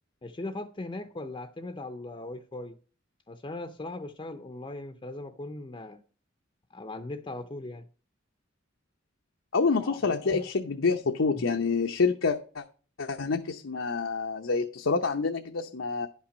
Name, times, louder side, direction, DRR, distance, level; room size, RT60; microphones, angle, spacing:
voice 1, 0.2-2.8 3.3-6.0 6.7-7.9 9.8-10.4, left 2 dB, 25° left, 0.5 m, -39 dB
voice 2, 9.5-12.6 13.0-16.1, left 4 dB, 90° left, 0.8 m, -27 dB
11.0 x 5.8 x 5.1 m
head